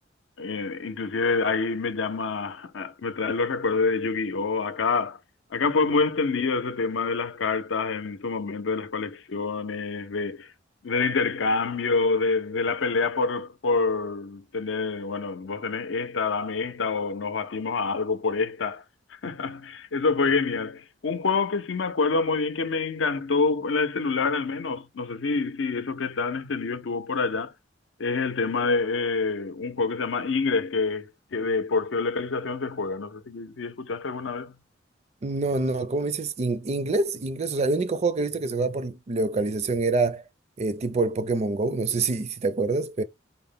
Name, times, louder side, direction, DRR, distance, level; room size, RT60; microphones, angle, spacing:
voice 1, 0.4-5.2 5.5-10.5 10.8-18.8 19.1-27.5 28.0-34.6, left 4 dB, 80° left, 0.6 m, -27 dB
voice 2, 35.2-40.2 40.6-43.0, right 3 dB, 35° right, 0.4 m, -26 dB
4.2 x 2.1 x 3.6 m
head